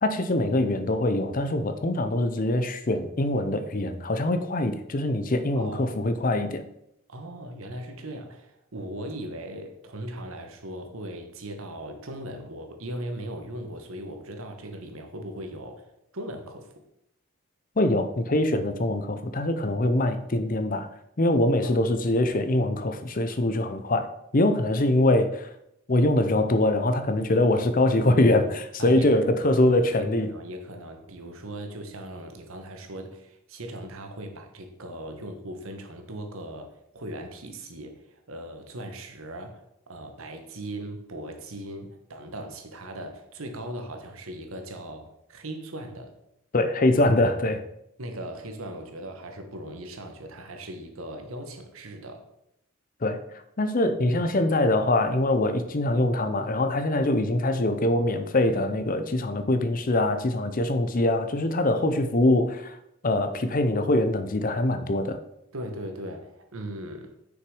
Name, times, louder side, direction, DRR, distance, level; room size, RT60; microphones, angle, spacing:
voice 1, 0.0-6.6 17.8-20.9 21.2-25.5 25.9-30.3 46.5-47.6 53.0-53.2 53.6-62.8 63.0-65.2, left 1 dB, 40° left, 0.6 m, -23 dB
voice 2, 5.5-5.9 7.1-15.9 16.1-16.8 21.6-21.9 28.8-29.6 30.0-46.1 48.0-52.3 54.1-54.3 65.5-67.1, right 1 dB, 75° right, 1.3 m, -38 dB
6.5 x 5.9 x 4.8 m
head